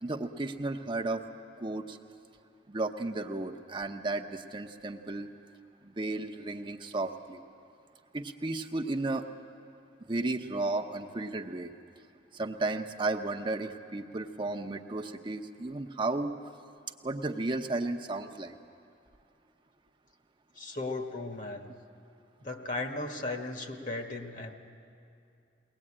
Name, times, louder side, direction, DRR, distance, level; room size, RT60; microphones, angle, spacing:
voice 1, 0.0-1.2 1.6-2.0 2.7-5.3 5.8-7.4 8.1-9.3 10.1-11.7 12.3-16.3 17.0-18.6, right 2 dB, 30° right, 3 dB, 0.8 m, -33 dB
voice 2, 20.5-21.7 22.4-24.6, left 2 dB, 50° left, 4 dB, 1.6 m, -36 dB
22.0 x 18.5 x 8.7 m, 2.5 s
head